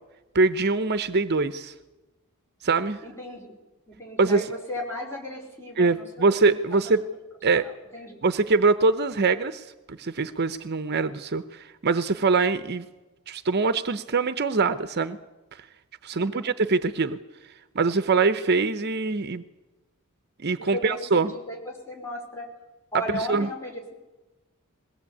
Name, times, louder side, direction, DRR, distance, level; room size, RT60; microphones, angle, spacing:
voice 1, 0.3-1.7 2.6-3.0 4.2-4.5 5.8-7.0 7.4-7.6 8.2-12.8 13.3-15.2 15.6-15.7 16.0-17.2 17.7-19.4 20.4-21.3 23.1-23.5, right 4 dB, 50° right, 12 dB, 0.7 m, -23 dB
voice 2, 3.0-3.5 3.9-6.4 7.5-8.2 16.1-16.5 20.6-22.5 22.9-23.9, equal, 10° left, -1 dB, 5.0 m, -36 dB
21.5 x 17.0 x 8.5 m, 1.1 s
head